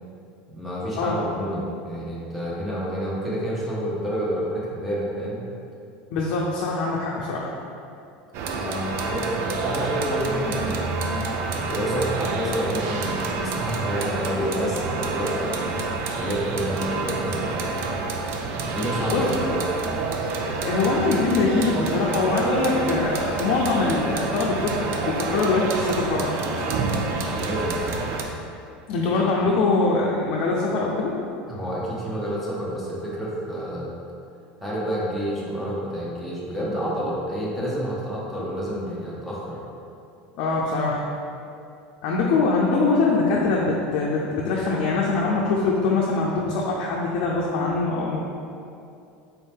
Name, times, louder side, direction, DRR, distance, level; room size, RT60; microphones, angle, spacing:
voice 1, 0.5-5.4 8.5-10.8 11.5-15.8 16.1-17.9 18.6-19.7 27.2-28.1 31.5-33.9 34.6-39.6, equal, ahead, -8 dB, 0.8 m, -29 dB
voice 2, 6.1-7.5 19.1-19.3 20.4-26.3 28.9-31.1 40.4-41.0 42.0-48.2, left 3 dB, 65° left, -4 dB, 0.5 m, -23 dB
sound 1, 8.3-28.2, right 3 dB, 55° right, 0.4 m, -28 dB
4.1 x 2.7 x 3.5 m, 2.6 s
supercardioid pair, 110°, 5 cm